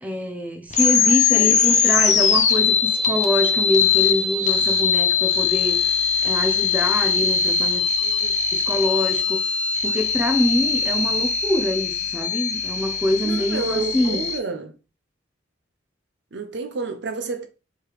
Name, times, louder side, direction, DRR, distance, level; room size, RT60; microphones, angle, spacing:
voice 1, 0.0-5.9 6.2-7.8 8.5-9.4 9.8-14.2, equal, 10° right, 0.5 m, -25 dB
sound 1, 0.7-14.4, left 6 dB, 35° left, 0.6 m, -21 dB
voice 2, 1.1-2.0 8.0-8.4 13.2-14.8 16.3-17.5, right 3 dB, 60° right, 0.7 m, -30 dB
3.3 x 3.0 x 4.7 m
head